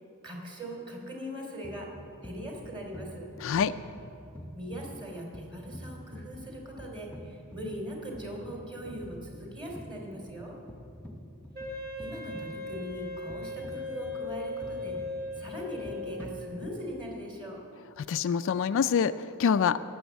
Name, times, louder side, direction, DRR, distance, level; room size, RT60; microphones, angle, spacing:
voice 1, 0.2-1.9 2.2-3.2 4.5-10.6 12.0-15.0 15.4-17.6, equal, 25° right, 0 dB, 2.9 m, -40 dB
sound 1, 1.6-17.0, equal, 5° left, 0.8 m, -47 dB
voice 2, 3.4-3.7 18.0-19.8, left 7 dB, 65° left, 12 dB, 0.4 m, -26 dB
Wind instrument woodwind instrument, 11.5-16.6, left 2 dB, 45° right, 2.0 m, -38 dB
17.0 x 7.1 x 8.1 m, 2.7 s
head